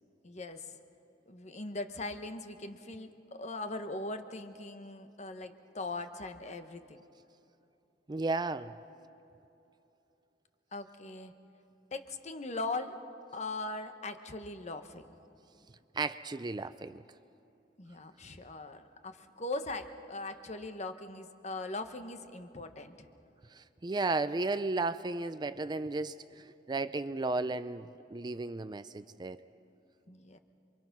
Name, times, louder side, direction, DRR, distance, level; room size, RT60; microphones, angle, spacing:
voice 1, 0.2-0.8 1.3-7.0 10.7-11.3 11.9-12.9 13.3-15.1 17.8-23.1 30.1-30.4, left 2 dB, 40° left, 8 dB, 1.2 m, -40 dB
voice 2, 8.1-8.7 15.9-17.0 23.5-29.4, right 3 dB, 25° right, 13 dB, 0.4 m, -34 dB
27.5 x 24.0 x 6.0 m, 2.9 s
head